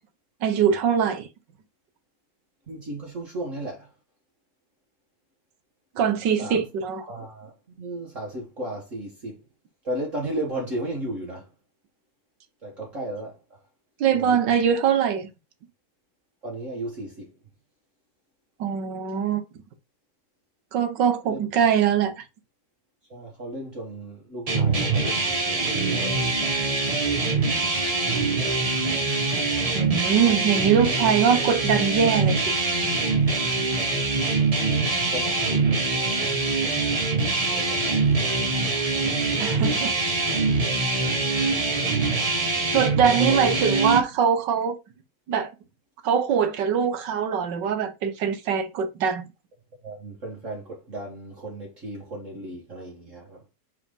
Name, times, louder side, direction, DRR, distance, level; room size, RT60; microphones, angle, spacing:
voice 1, 0.4-1.3 6.0-7.0 14.0-15.3 18.6-19.4 20.7-22.2 29.7-32.6 39.4-39.9 42.7-44.8 45.3-45.5 46.0-49.2, right 7 dB, 85° right, 1.7 m, -22 dB
voice 2, 2.7-3.9 6.4-6.6 7.0-7.5 7.8-9.4 9.8-11.5 12.6-13.6 14.1-14.7 16.4-17.3 21.3-21.4 23.1-26.3 35.1-35.9 37.4-38.4 43.0-43.5 49.8-53.4, right 1 dB, 45° right, 2.3 m, -35 dB
sound 1, 24.5-44.0, right 3 dB, 25° right, 0.8 m, -24 dB
4.9 x 4.1 x 5.3 m
omnidirectional pair, 1.9 m